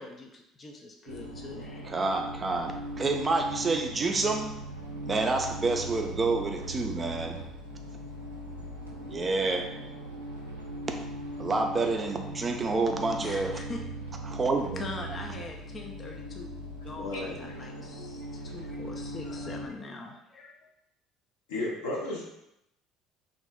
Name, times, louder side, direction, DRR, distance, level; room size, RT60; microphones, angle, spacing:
voice 1, 0.0-1.9 13.2-13.8 14.8-16.5 16.8-20.7, left 2 dB, 35° left, 2 dB, 0.4 m, -42 dB
sound 1, 1.1-19.7, right 1 dB, 90° right, 0.4 m, -39 dB
voice 2, 1.8-4.5 5.1-7.4 9.0-9.7 11.4-13.6 14.3-14.9, right 3 dB, 30° right, 4 dB, 0.4 m, -28 dB
voice 3, 17.0-17.6 21.5-22.2, left 2 dB, 75° left, -4 dB, 0.8 m, -33 dB
2.5 x 2.0 x 3.6 m, 0.82 s
figure-of-eight pair, 60°, 0 cm